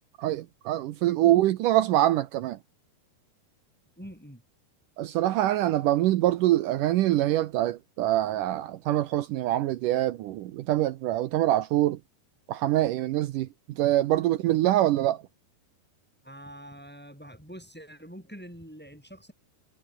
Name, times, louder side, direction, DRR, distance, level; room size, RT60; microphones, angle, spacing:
voice 1, 0.2-2.6 5.0-12.0 12.5-13.5 13.8-15.2, right 14 dB, 85° right, 1.8 m, -24 dB
voice 2, 4.0-4.4 16.2-19.3, equal, ahead, 4.5 m, -45 dB
omnidirectional pair, 5.0 m